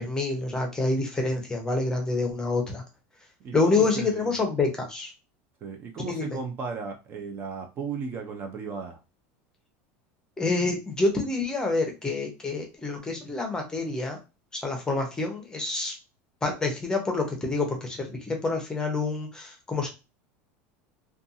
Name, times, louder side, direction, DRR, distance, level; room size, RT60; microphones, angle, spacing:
voice 1, 0.0-2.8 3.5-5.1 6.1-6.4 10.4-14.2 14.6-15.9 16.4-19.9, left 3 dB, 10° left, 2 dB, 0.7 m, -27 dB
voice 2, 3.4-4.3 5.6-9.0, right 5 dB, 35° right, 4 dB, 0.5 m, -35 dB
2.5 x 2.3 x 2.7 m, 0.28 s
supercardioid pair, 140°, 6 cm